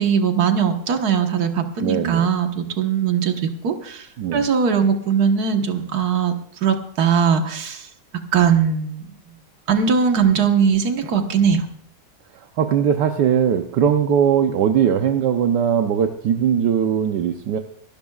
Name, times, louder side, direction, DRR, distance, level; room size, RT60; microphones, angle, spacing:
voice 1, 0.0-4.1 4.3-6.3 6.6-7.9 8.3-9.0 9.7-11.7, right 7 dB, 65° right, 5 dB, 1.8 m, -20 dB
voice 2, 1.8-2.3 4.2-4.5 12.6-17.6, right 8 dB, 80° right, 5 dB, 1.4 m, -19 dB
25.5 x 12.0 x 2.4 m, 0.65 s
omnidirectional pair, 1.8 m